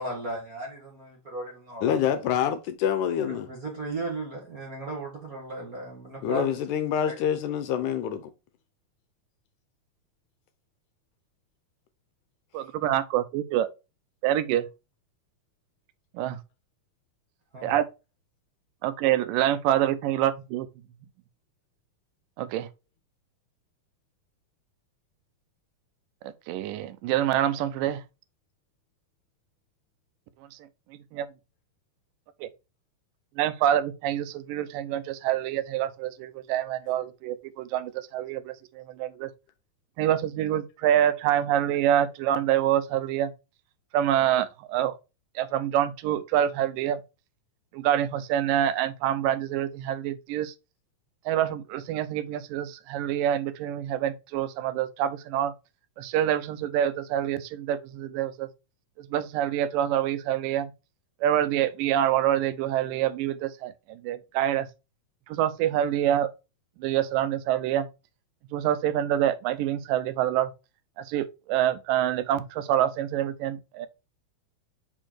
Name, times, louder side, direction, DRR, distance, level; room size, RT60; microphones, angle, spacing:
voice 1, 0.0-1.9 3.3-6.5 7.1-7.2 17.5-17.7, right 2 dB, 50° right, 1.1 m, -35 dB
voice 2, 1.8-3.5 6.2-8.3, left 9 dB, 80° left, 1.9 m, -26 dB
voice 3, 12.5-13.7 14.2-14.7 16.1-16.4 17.6-17.9 18.8-20.7 22.4-22.7 26.5-28.0 30.5-30.6 31.1-31.3 32.4-32.5 33.4-39.3 40.0-43.3 43.9-45.0 45.4-47.0 47.7-50.5 51.3-55.5 56.0-58.5 59.0-60.7 61.2-64.7 65.3-66.3 66.8-67.9 68.5-70.5 71.0-73.9, right 11 dB, 85° right, 2.3 m, -26 dB
5.4 x 4.5 x 4.4 m
omnidirectional pair, 3.9 m